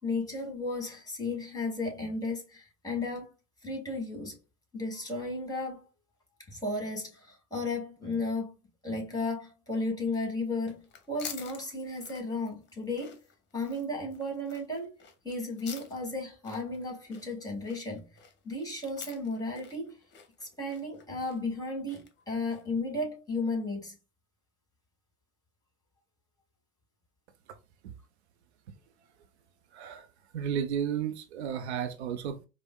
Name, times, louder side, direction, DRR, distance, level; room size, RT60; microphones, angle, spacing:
voice 1, 0.0-3.3 3.6-4.4 4.7-5.8 6.5-8.5 8.8-13.2 13.5-14.9 15.2-18.1 18.4-20.0 20.4-24.0, left 2 dB, 10° left, 2.0 m, -34 dB
sound 1, 10.6-22.8, left 7 dB, 30° left, 0.9 m, -49 dB
voice 2, 29.7-30.1 30.3-32.5, right 8 dB, 75° right, 0.5 m, -33 dB
4.7 x 2.1 x 2.3 m
figure-of-eight pair, 65°, 34 cm